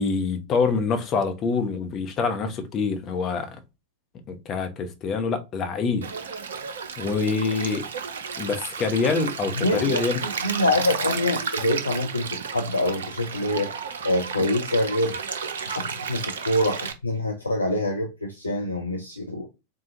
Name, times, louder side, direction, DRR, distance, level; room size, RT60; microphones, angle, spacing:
voice 1, 0.0-3.6 4.3-6.1 7.0-7.9 8.4-10.2, left 4 dB, 30° left, 0.8 m, -25 dB
Stream, 6.0-16.9, right 6 dB, 65° right, 0.5 m, -32 dB
voice 2, 9.6-13.7 14.0-15.2 15.7-19.5, left 1 dB, 80° left, 0.5 m, -25 dB
4.3 x 2.3 x 2.8 m
figure-of-eight pair, 90°, 0 cm